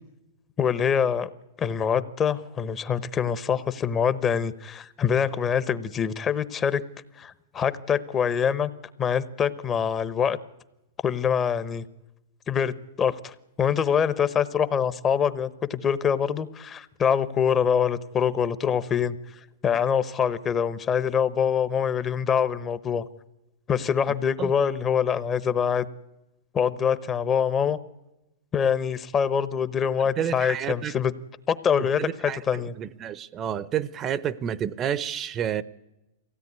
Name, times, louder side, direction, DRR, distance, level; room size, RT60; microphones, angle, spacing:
voice 1, 0.6-1.3 1.6-6.8 7.2-8.7 9.0-10.4 11.0-11.8 12.5-12.7 13.0-19.2 19.6-23.1 23.7-25.9 26.5-27.8 28.5-31.1 31.5-32.7, left 7 dB, 25° left, 0.9 m, -24 dB
voice 2, 30.2-30.9 32.0-35.6, right 9 dB, 25° right, 0.7 m, -30 dB
23.0 x 16.5 x 9.6 m
hypercardioid pair, 135°, 0 cm